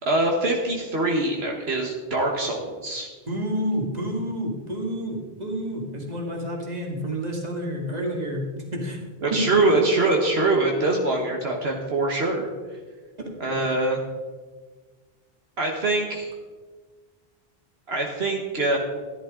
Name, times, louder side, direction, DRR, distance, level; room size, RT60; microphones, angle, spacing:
voice 1, 0.0-3.1 9.2-12.5 13.4-14.0 15.6-16.3 17.9-18.8, right 2 dB, 75° right, 1 dB, 1.6 m, -23 dB
voice 2, 3.3-8.5 8.7-9.0 9.3-9.5 13.2-13.3, equal, 40° right, 0 dB, 2.2 m, -29 dB
14.5 x 11.0 x 3.8 m, 1.4 s
omnidirectional pair, 1.1 m